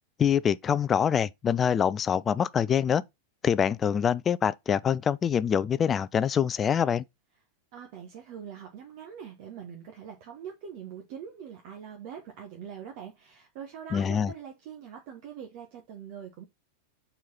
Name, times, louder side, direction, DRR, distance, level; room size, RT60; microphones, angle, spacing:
voice 1, 0.2-3.0 3.4-7.0 13.9-14.3, left 8 dB, 25° left, 0.4 m, -25 dB
voice 2, 7.7-16.5, right 8 dB, 45° right, 1.2 m, -43 dB
4.6 x 4.4 x 5.6 m
figure-of-eight pair, 90°, 0 cm